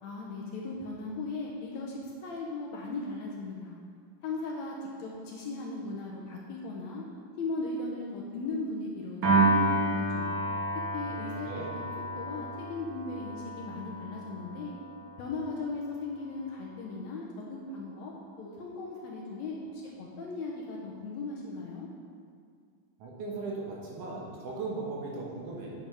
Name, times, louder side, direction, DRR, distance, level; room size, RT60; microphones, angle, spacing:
voice 1, 0.0-3.8 4.2-7.0 7.4-10.4 10.9-14.7 15.2-21.9, left 3 dB, 70° left, -2 dB, 1.8 m, -37 dB
Piano, 9.2-15.6, right 2 dB, 50° right, 1.4 m, -30 dB
voice 2, 11.1-11.8 23.0-25.7, right 3 dB, 75° right, -4 dB, 2.8 m, -38 dB
8.5 x 7.7 x 3.5 m, 2.1 s
omnidirectional pair, 3.8 m